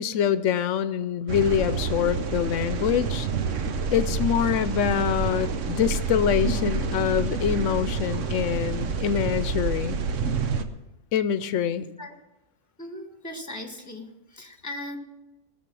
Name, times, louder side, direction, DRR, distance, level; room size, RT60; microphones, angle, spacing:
voice 1, 0.0-3.3 3.9-10.0 11.1-11.9, left 9 dB, 90° left, 13 dB, 1.0 m, -25 dB
sound 1, 1.3-10.6, right 4 dB, 85° right, 1.2 m, -28 dB
voice 2, 11.8-12.1 12.8-15.0, left 1 dB, 15° left, 4 dB, 1.5 m, -38 dB
19.0 x 6.9 x 6.1 m, 0.98 s
omnidirectional pair, 1.2 m